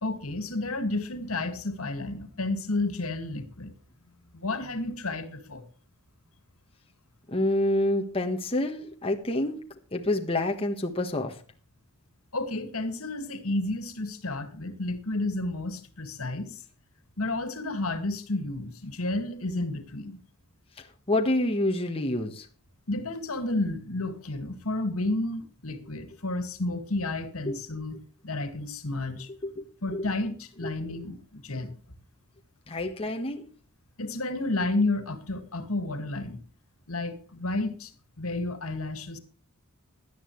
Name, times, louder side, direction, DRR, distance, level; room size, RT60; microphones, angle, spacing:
voice 1, 0.0-3.7 4.3-5.6 12.3-16.6 17.2-20.2 22.9-28.0 28.2-29.3 29.8-31.7 34.0-36.4 36.9-37.9 38.2-39.2, left 2 dB, 80° left, 2.0 m, -31 dB
voice 2, 7.3-9.6 9.9-11.3 21.1-22.4 27.5-27.6 29.4-29.6 29.9-30.0 30.6-30.7 32.7-33.5, left 1 dB, 25° left, 1.3 m, -27 dB
17.5 x 11.5 x 3.2 m
head